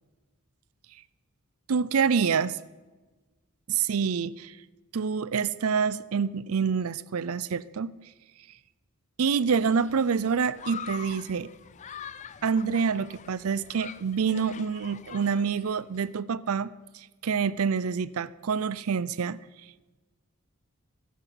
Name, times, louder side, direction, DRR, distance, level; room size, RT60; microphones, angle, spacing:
voice 1, 1.7-2.6 3.7-4.6 4.9-7.9 9.2-11.5 12.4-19.4, right 6 dB, 80° right, 19 dB, 0.5 m, -27 dB
Human group actions, 9.5-16.1, left 8 dB, 35° left, 0.4 m, -44 dB
17.0 x 9.5 x 5.8 m, 1.2 s
head